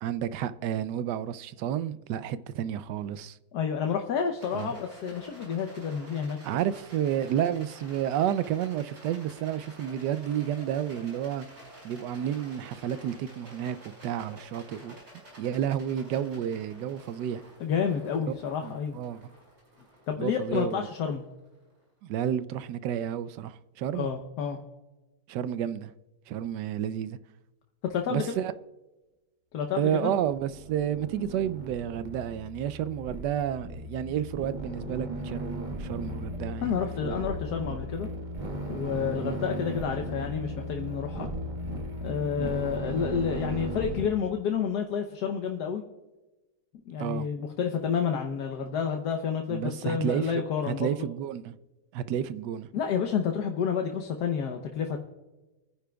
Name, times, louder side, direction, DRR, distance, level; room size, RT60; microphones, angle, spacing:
voice 1, 0.0-3.4 4.5-4.7 6.4-11.5 11.8-14.9 15.4-17.4 18.6-19.2 20.2-20.9 22.0-24.1 25.3-25.9 26.3-27.2 28.1-28.5 29.8-37.1 39.2-39.4 42.4-42.5 47.0-47.3 49.5-51.6 51.9-52.7, right 10 dB, 90° right, 1.2 m, -31 dB
voice 2, 3.5-6.4 17.6-19.0 20.1-21.2 23.9-24.6 27.9-28.4 29.5-30.1 36.6-38.1 38.7-41.3 42.0-45.8 46.9-50.9 52.7-55.0, left 7 dB, 75° left, 1.4 m, -30 dB
Rattle, 4.3-21.7, equal, 75° right, 5.7 m, -51 dB
sound 1, 30.2-44.1, equal, 30° right, 1.5 m, -36 dB
24.5 x 10.0 x 2.3 m
omnidirectional pair, 1.8 m